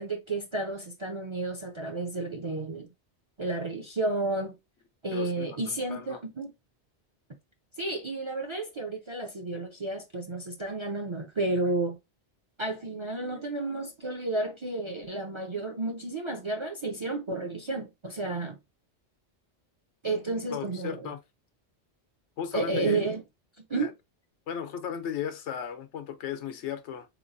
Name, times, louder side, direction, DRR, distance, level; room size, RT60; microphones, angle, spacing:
voice 1, 0.0-2.9 3.4-4.5 5.0-6.5 7.8-12.0 12.6-18.6 20.0-21.1 22.5-23.2 23.7-23.9, right 2 dB, 45° right, 0.4 m, -31 dB
voice 2, 5.1-5.6 5.9-6.2 20.5-21.2 22.4-23.0 23.8-23.9 24.5-27.1, left 8 dB, 85° left, 1.0 m, -35 dB
3.8 x 2.9 x 2.5 m
omnidirectional pair, 1.2 m